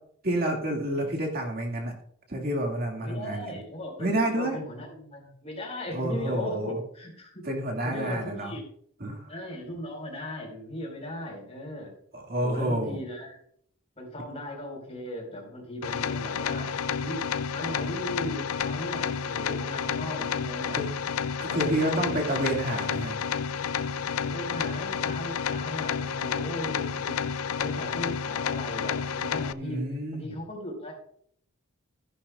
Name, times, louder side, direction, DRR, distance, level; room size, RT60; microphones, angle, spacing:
voice 1, 0.2-1.9 2.3-3.6 4.0-4.6 5.9-6.8 7.4-8.5 9.0-9.3 12.1-13.0 20.7-20.9 21.4-23.2 29.6-30.3, right 1 dB, 45° right, 0 dB, 2.2 m, -29 dB
voice 2, 3.0-7.4 7.8-8.6 9.3-11.9 12.4-13.4 14.0-16.7 17.0-17.2 17.5-20.8 21.4-22.2 24.2-27.2 27.6-29.9 30.1-30.9, left 1 dB, 30° left, -1 dB, 4.9 m, -37 dB
sound 1, 15.8-29.5, left 7 dB, 80° left, 0.4 m, -30 dB
15.5 x 11.0 x 2.4 m, 0.64 s
head